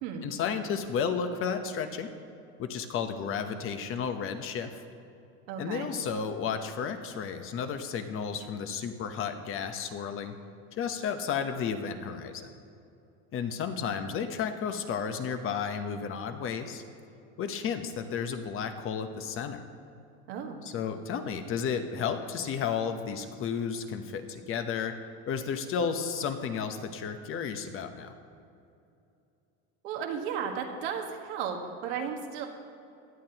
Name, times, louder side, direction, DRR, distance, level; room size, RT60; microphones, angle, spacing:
voice 1, 0.2-2.1 2.6-4.8 5.6-10.3 10.7-12.5 13.3-16.8 17.4-19.6 20.6-25.0 25.3-28.1, left 6 dB, 40° left, 8 dB, 0.9 m, -32 dB
voice 2, 5.5-5.9 20.3-20.6 29.8-32.5, right 7 dB, 85° right, 2 dB, 1.6 m, -34 dB
17.0 x 10.5 x 2.9 m, 2.6 s
supercardioid pair, 135°, 33 cm